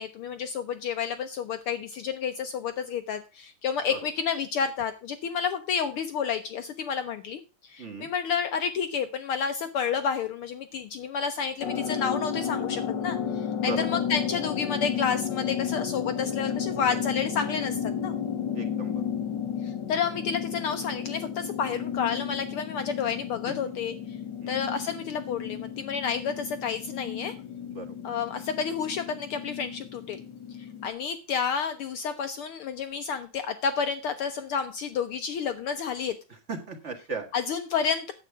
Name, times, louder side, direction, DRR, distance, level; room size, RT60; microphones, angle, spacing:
voice 1, 0.0-18.1 19.6-23.9 24.5-27.4 28.0-30.2 30.6-36.1 37.3-38.1, left 6 dB, 85° left, 9 dB, 1.2 m, -30 dB
sound 1, 11.6-30.9, left 8 dB, 50° left, 1.5 m, -33 dB
voice 2, 18.5-19.0 23.5-23.6 24.4-24.6 27.7-27.9 36.5-37.3, right 4 dB, 45° right, 5 dB, 0.9 m, -36 dB
10.5 x 8.1 x 4.6 m, 0.31 s
omnidirectional pair, 3.4 m